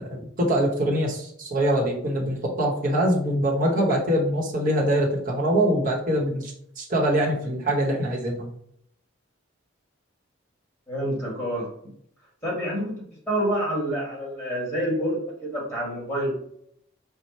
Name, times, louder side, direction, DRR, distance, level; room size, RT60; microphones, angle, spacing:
voice 1, 0.0-8.5, right 1 dB, 45° right, -3 dB, 1.0 m, -24 dB
voice 2, 10.9-11.7 12.4-16.3, equal, 15° left, -6 dB, 1.7 m, -28 dB
4.5 x 2.2 x 4.2 m, 0.69 s
head